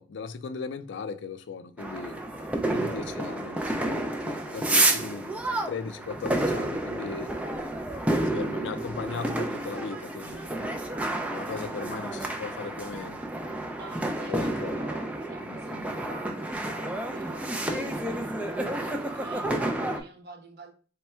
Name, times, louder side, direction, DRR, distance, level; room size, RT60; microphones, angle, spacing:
voice 1, 0.0-2.2 2.7-7.3 8.2-10.5 11.3-13.2 14.3-14.8 15.5-15.9 17.7-17.9, left 5 dB, 80° left, 0.4 m, -37 dB
sound 1, 1.8-20.0, right 1 dB, 10° right, 0.4 m, -30 dB
voice 2, 2.5-3.2 11.3-11.9 13.8-20.7, right 3 dB, 60° right, 0.9 m, -48 dB
3.4 x 2.1 x 4.3 m
head